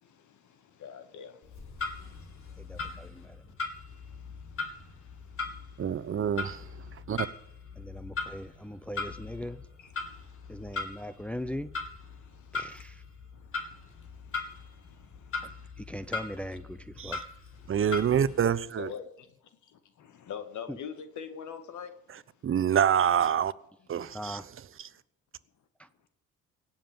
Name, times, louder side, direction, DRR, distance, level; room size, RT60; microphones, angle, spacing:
voice 1, 0.0-2.9 3.2-3.3 3.9-7.0 8.9-9.1 9.8-10.8 12.0-12.8 13.3-15.7 16.0-16.1 17.5-17.8 18.8-21.9, left 7 dB, 75° left, 2.0 m, -47 dB
Clock, 1.4-18.6, left 4 dB, 45° left, 3.7 m, -40 dB
voice 2, 2.6-3.3 7.8-9.6 10.5-11.7 12.5-12.9 15.8-16.8 17.0-17.2 24.1-24.4, equal, 5° left, 0.6 m, -39 dB
voice 3, 5.8-6.6 7.1-7.3 17.0-17.2 17.7-18.9 22.4-23.5 23.9-24.4 24.8-24.9, right 8 dB, 45° right, 0.9 m, -26 dB
17.0 x 7.5 x 9.0 m
cardioid pair, 90°, 30 cm